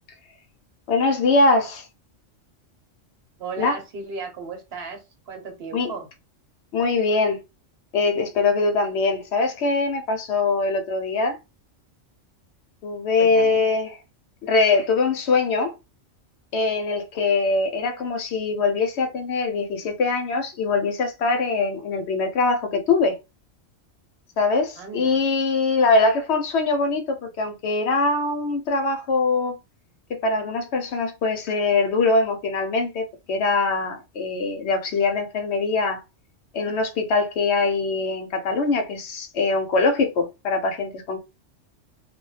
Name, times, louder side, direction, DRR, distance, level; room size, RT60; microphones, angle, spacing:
voice 1, 0.9-1.9 3.6-3.8 5.7-5.9 6.7-7.4 7.9-11.4 12.8-14.0 14.4-15.7 16.5-23.2 24.4-29.6 30.2-36.0 36.5-41.2, left 3 dB, 70° left, 0.8 m, -22 dB
voice 2, 3.4-6.1 13.2-13.6 24.8-25.2, right 4 dB, 60° right, 1.0 m, -35 dB
2.3 x 2.1 x 3.1 m
omnidirectional pair, 1.3 m